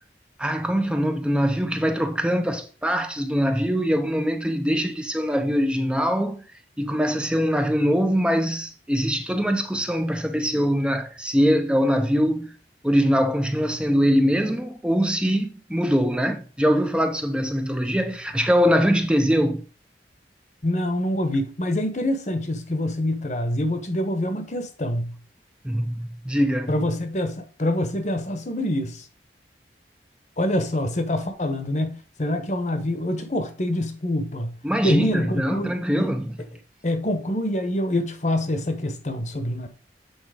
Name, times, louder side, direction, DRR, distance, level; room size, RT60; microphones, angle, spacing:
voice 1, 0.4-6.4 6.8-12.5 12.8-19.6 25.6-26.8 34.6-36.4, equal, 5° right, 0.6 m, -23 dB
voice 2, 20.6-25.2 26.7-29.1 30.4-34.5 34.8-36.1 36.8-39.7, left 1 dB, 40° left, 1.1 m, -26 dB
8.2 x 4.2 x 5.0 m
head